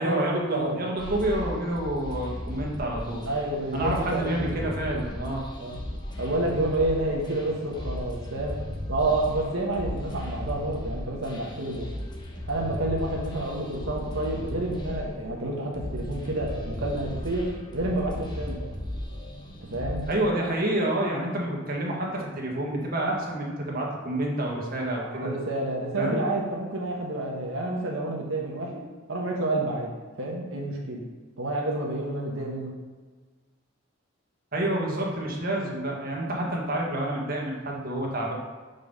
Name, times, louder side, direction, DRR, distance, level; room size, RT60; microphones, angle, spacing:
voice 1, 0.0-3.2 3.7-5.4 20.1-25.3 26.0-26.2 34.5-38.3, right 1 dB, 45° right, -2 dB, 1.6 m, -28 dB
sound 1, 1.0-20.2, left 1 dB, 20° left, 1.0 m, -36 dB
voice 2, 3.2-4.7 5.6-5.8 6.2-11.9 12.5-17.5 17.7-18.6 19.7-20.0 25.0-28.8 29.1-29.9 30.2-31.0 31.4-32.7, right 2 dB, 80° right, -2 dB, 1.2 m, -29 dB
5.4 x 5.4 x 5.4 m, 1.4 s
head